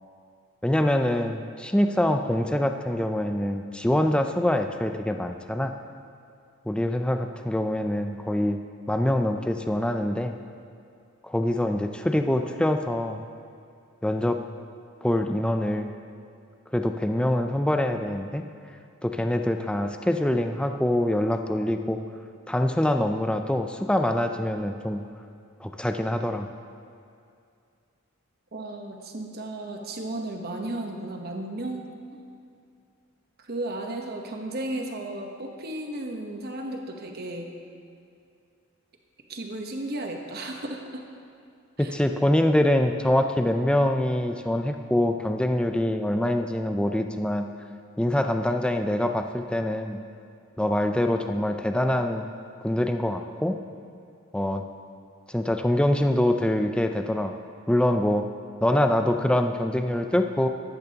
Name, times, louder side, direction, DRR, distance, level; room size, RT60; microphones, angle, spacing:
voice 1, 0.6-5.7 6.7-10.3 11.2-13.2 14.0-14.4 15.0-15.9 16.7-18.5 19.0-22.0 22.5-25.0 25.6-26.5 41.8-47.5 48.0-50.0 50.6-52.3 52.6-53.6 54.3-54.6 55.3-57.3 57.7-58.3 58.6-60.5, left 1 dB, 5° left, 6 dB, 0.4 m, -24 dB
voice 2, 28.5-31.9 33.4-37.5 39.3-41.1 41.8-41.9, right 1 dB, 45° right, 2 dB, 1.1 m, -34 dB
13.5 x 12.0 x 2.9 m, 2.4 s
head